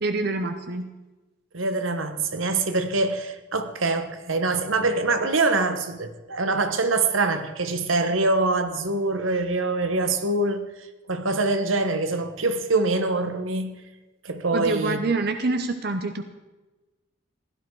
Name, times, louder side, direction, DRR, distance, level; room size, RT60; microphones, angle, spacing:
voice 1, 0.0-0.9 14.5-16.2, right 3 dB, 50° right, 0.9 m, -26 dB
voice 2, 1.5-13.8 14.2-15.0, right 3 dB, 80° right, 1.2 m, -24 dB
16.5 x 12.0 x 4.8 m
head